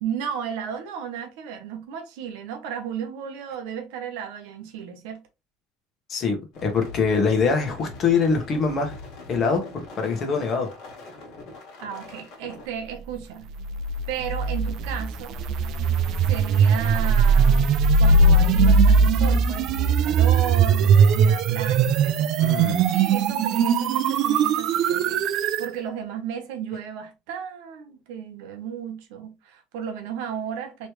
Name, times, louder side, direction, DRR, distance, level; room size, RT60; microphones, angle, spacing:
voice 1, 0.0-5.2 11.8-13.5 14.1-15.3 16.3-17.7 18.0-22.3 22.9-25.2 25.6-30.9, right 8 dB, 80° right, 1.0 m, -34 dB
voice 2, 6.1-9.0 9.3-10.7 22.4-22.9, left 5 dB, 40° left, 1.1 m, -24 dB
sound 1, 6.5-12.7, left 3 dB, 65° left, 1.6 m, -42 dB
sound 2, 13.6-25.7, right 4 dB, 55° right, 0.4 m, -20 dB
3.2 x 3.0 x 3.1 m
cardioid pair, 135°, 0 cm